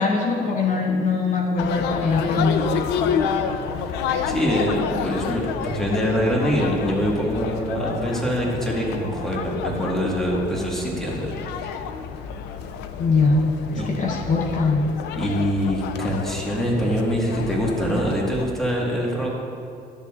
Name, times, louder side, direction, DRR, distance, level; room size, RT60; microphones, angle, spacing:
voice 1, 0.0-2.6 13.0-13.4 13.7-14.9, left 4 dB, 50° left, 0 dB, 0.8 m, -21 dB
sound 1, 1.6-18.5, left 7 dB, 85° left, 0.5 m, -29 dB
voice 2, 4.2-11.3 11.6-11.8 13.8-13.9 15.1-19.3, equal, ahead, -3 dB, 1.5 m, -24 dB
11.5 x 6.8 x 2.4 m, 2.4 s
cardioid pair, 110°, 17 cm